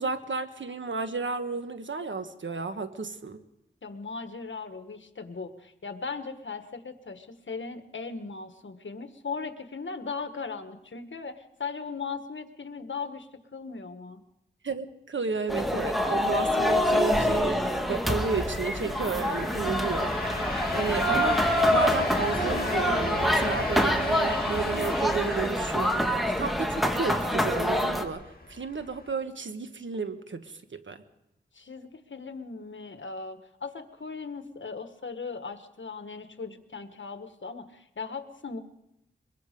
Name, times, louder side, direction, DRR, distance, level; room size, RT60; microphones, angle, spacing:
voice 1, 0.0-3.4 14.6-21.4 21.7-26.0 26.4-28.2 28.5-31.0, right 4 dB, 85° right, 8 dB, 1.3 m, -32 dB
voice 2, 3.8-14.2 31.5-38.6, left 4 dB, 80° left, 8 dB, 1.5 m, -38 dB
sound 1, 15.5-28.0, equal, ahead, 2.1 m, -26 dB
sound 2, 17.2-29.1, left 2 dB, 50° left, 2.4 m, -37 dB
23.0 x 22.5 x 5.2 m, 0.86 s
wide cardioid pair, 55°, 19 cm